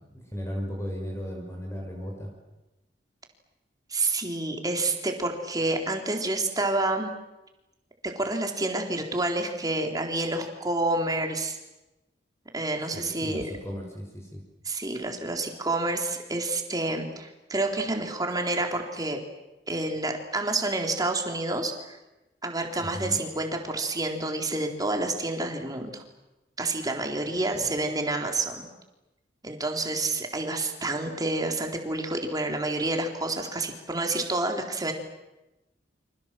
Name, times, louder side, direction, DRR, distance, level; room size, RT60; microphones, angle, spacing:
voice 1, 0.0-2.3 12.9-14.4 22.7-23.2 27.5-27.7, equal, 15° left, 0 dB, 6.1 m, -36 dB
voice 2, 3.9-7.1 8.2-11.6 12.5-13.5 14.7-19.2 19.7-22.0 22.4-26.0 26.6-28.7 29.4-34.9, right 2 dB, 20° right, 3 dB, 3.9 m, -28 dB
29.0 x 26.5 x 7.7 m, 1.0 s
head